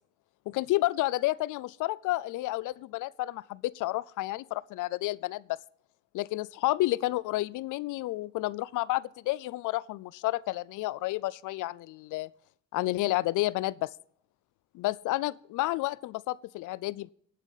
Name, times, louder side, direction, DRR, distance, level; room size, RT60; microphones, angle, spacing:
voice 1, 0.5-5.6 6.1-12.3 12.7-13.9 14.7-17.1, left 18 dB, 85° left, 0.5 m, -30 dB
14.0 x 8.9 x 4.0 m
cardioid pair, 90°, 30 cm